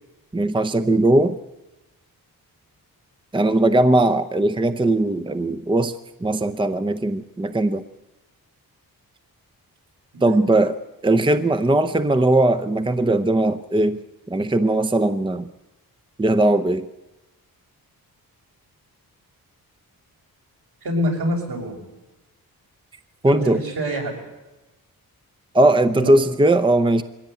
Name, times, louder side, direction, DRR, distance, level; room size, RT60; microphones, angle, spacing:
voice 1, 0.3-1.4 3.3-5.9 6.2-7.8 10.2-10.8 11.0-14.0 14.3-15.5 16.2-16.9 23.2-23.6 25.5-27.0, right 2 dB, 15° right, 10 dB, 0.7 m, -19 dB
voice 2, 20.8-21.8 23.2-24.1 25.9-26.1, equal, 70° right, 0 dB, 6.5 m, -26 dB
22.0 x 16.5 x 9.1 m, 1.0 s
wide cardioid pair, 110°, 37 cm